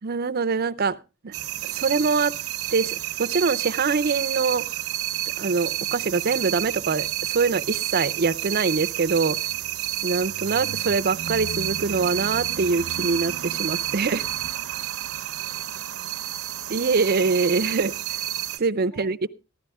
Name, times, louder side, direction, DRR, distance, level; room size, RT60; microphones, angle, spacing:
voice 1, 0.0-1.0 1.2-1.3 1.6-2.3 2.7-4.7 5.4-9.4 10.0-14.2 16.7-17.9 18.6-19.3, right 4 dB, 45° right, 0.6 m, -24 dB
sound 1, 1.3-18.6, right 13 dB, 80° right, 0.8 m, -30 dB
voice 2, 1.7-2.4 9.5-9.9 13.9-16.7 18.8-19.3, left 2 dB, 85° left, 4.4 m, -55 dB
14.5 x 12.0 x 3.5 m
head